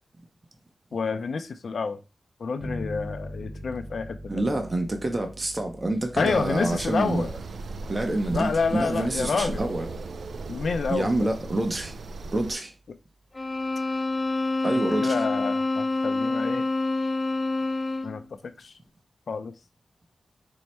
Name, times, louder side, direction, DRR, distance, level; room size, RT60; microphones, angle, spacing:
voice 1, 0.9-2.0 2.4-4.6 6.2-7.3 8.3-9.7 10.5-11.3 14.7-16.7 18.0-18.7 19.3-19.5, left 4 dB, 75° left, 0.4 m, -29 dB
sound 1, 2.6-11.9, equal, 10° right, 1.1 m, -43 dB
voice 2, 4.3-7.2 7.9-9.9 10.9-11.9 12.3-12.7 14.6-15.2, right 2 dB, 30° right, 0.7 m, -27 dB
sound 2, 6.1-12.5, right 3 dB, 75° right, 0.3 m, -37 dB
sound 3, 13.3-18.2, left 2 dB, 30° left, 0.6 m, -27 dB
4.6 x 2.1 x 4.2 m
wide cardioid pair, 75°, 0 cm